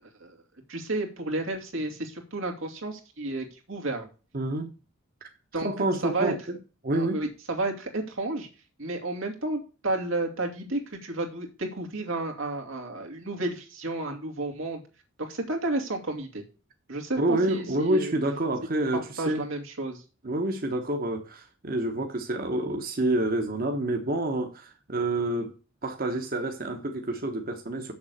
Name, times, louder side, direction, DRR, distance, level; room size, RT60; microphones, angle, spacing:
voice 1, 0.7-4.1 5.5-5.7 6.0-6.3 6.9-8.5 8.8-14.8 15.2-16.4 16.9-18.1 18.9-20.0, right 2 dB, 90° right, 2.7 m, -31 dB
voice 2, 4.3-4.7 5.2-5.3 5.6-6.6 6.8-7.2 17.2-19.4 20.2-25.6 25.8-27.9, right 1 dB, 45° right, 1.1 m, -28 dB
7.1 x 7.0 x 6.4 m
head